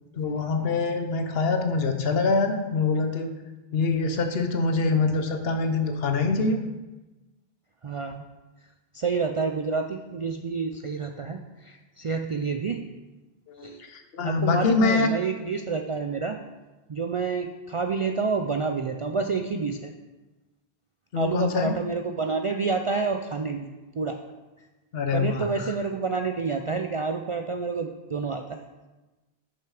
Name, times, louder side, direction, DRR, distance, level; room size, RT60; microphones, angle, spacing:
voice 1, 0.1-3.3 3.7-6.6 13.5-15.1 21.1-21.7 24.9-25.7, left 4 dB, 70° left, 6 dB, 1.0 m, -25 dB
voice 2, 7.8-8.2 8.9-12.8 13.6-13.8 14.2-16.4 16.9-19.9 21.2-23.7 24.0-24.2 25.1-28.6, right 4 dB, 55° right, 5 dB, 0.3 m, -28 dB
6.9 x 5.9 x 4.8 m, 1.1 s
omnidirectional pair, 1.0 m